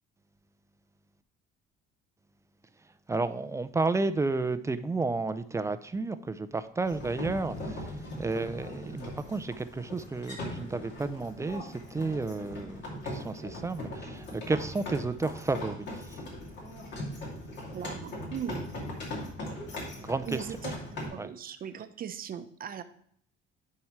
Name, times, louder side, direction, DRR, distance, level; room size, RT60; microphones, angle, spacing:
voice 1, 3.1-16.2 19.9-20.5 21.2-21.3, right 3 dB, 15° right, 0.4 m, -32 dB
sound 1, 6.8-21.1, left 1 dB, 60° left, 2.5 m, -40 dB
voice 2, 17.7-18.7 20.3-20.7 21.1-22.8, right 8 dB, 45° right, 0.7 m, -38 dB
10.0 x 4.7 x 3.1 m
cardioid pair, 120°, 21 cm